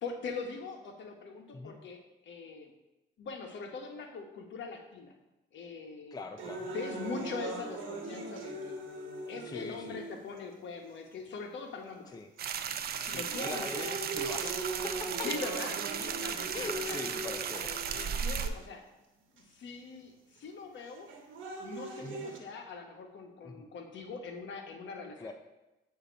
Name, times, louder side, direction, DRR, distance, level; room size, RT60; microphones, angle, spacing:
voice 1, 0.0-2.7 3.2-5.1 5.5-6.2 6.7-8.8 9.2-12.1 12.9-13.7 15.2-17.0 17.7-18.8 19.5-21.1 21.6-25.3, left 4 dB, 70° left, 3 dB, 1.0 m, -42 dB
voice 2, 6.1-6.7 9.4-10.0 12.1-12.3 13.0-15.3 16.5-17.7 22.0-22.3 23.4-23.7 25.2-25.3, left 3 dB, 20° left, 5 dB, 0.5 m, -42 dB
sound 1, 6.4-10.4 11.1-11.2 12.1-12.4 12.9-18.4 19.4-19.5 20.9-22.4, right 3 dB, 80° right, 1.1 m, -40 dB
sound 2, 12.4-18.5, right 7 dB, 50° right, 0.5 m, -35 dB
8.0 x 2.8 x 5.0 m, 1.0 s
cardioid pair, 90°, 20 cm